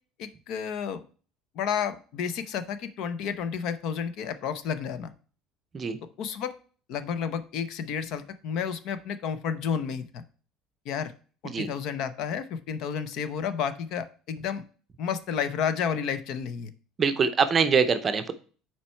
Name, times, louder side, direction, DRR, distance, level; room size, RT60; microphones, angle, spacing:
voice 1, 0.2-1.0 1.5-5.1 6.2-6.6 6.9-10.2 10.9-11.1 11.4-14.6 15.0-16.7, left 7 dB, 50° left, 12 dB, 0.7 m, -31 dB
voice 2, 17.0-18.3, right 6 dB, 25° right, 9 dB, 0.6 m, -24 dB
7.3 x 4.5 x 4.4 m, 0.40 s
cardioid pair, 155°, 0 cm